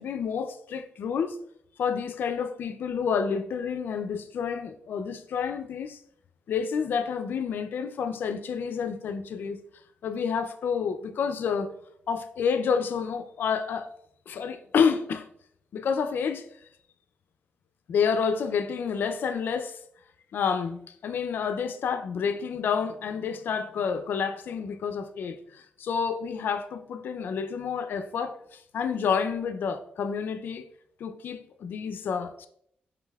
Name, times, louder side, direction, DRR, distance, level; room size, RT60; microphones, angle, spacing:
voice 1, 0.0-1.4 1.8-6.0 6.5-9.6 10.0-11.7 12.1-13.9 14.3-15.3 15.7-16.4 17.9-19.8 20.3-30.7 31.0-32.5, left 6 dB, 70° left, 0.3 m, -29 dB
4.9 x 3.2 x 2.2 m
cardioid pair, 75°, 3 cm